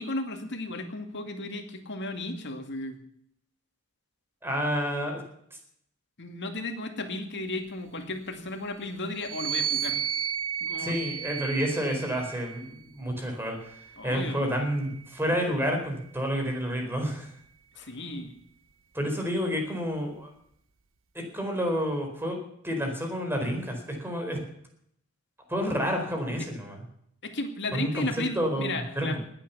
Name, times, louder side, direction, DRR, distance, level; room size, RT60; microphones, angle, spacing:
voice 1, 0.0-3.0 6.2-10.0 10.6-11.0 14.0-14.7 17.8-18.4 25.9-26.0 27.2-29.2, left 2 dB, 55° left, 5 dB, 2.4 m, -34 dB
voice 2, 4.4-5.2 10.8-13.7 14.0-17.3 18.9-20.3 21.1-22.4 22.6-24.4 25.5-26.8 27.7-28.1 28.3-29.2, equal, 10° right, 2 dB, 4.4 m, -29 dB
sound 1, 9.1-12.7 13.6-15.2, right 8 dB, 65° right, 1.1 m, -34 dB
20.0 x 8.9 x 7.0 m, 0.70 s
head